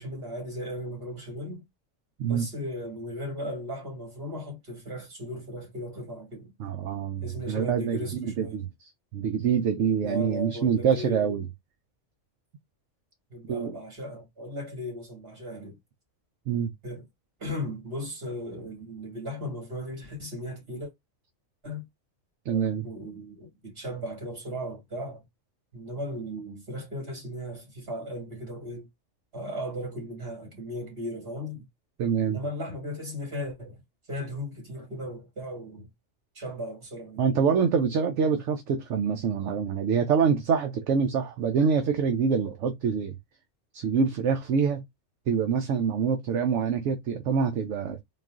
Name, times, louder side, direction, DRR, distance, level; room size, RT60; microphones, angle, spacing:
voice 1, 0.0-1.6 2.2-6.5 7.2-8.6 10.0-11.4 13.3-15.8 16.8-17.0 17.4-20.9 21.6-21.9 22.8-25.2 25.7-28.9 29.3-31.7 32.2-33.8 34.1-35.9 36.3-37.3, equal, 50° right, 2.5 m, -36 dB
voice 2, 6.6-8.0 8.4-8.7 9.1-11.4 13.5-13.8 16.5-16.7 22.5-22.9 32.0-32.4 37.2-43.1 43.7-44.8 45.3-48.0, right 6 dB, 75° right, 0.9 m, -25 dB
3.8 x 2.5 x 3.6 m
omnidirectional pair, 1.3 m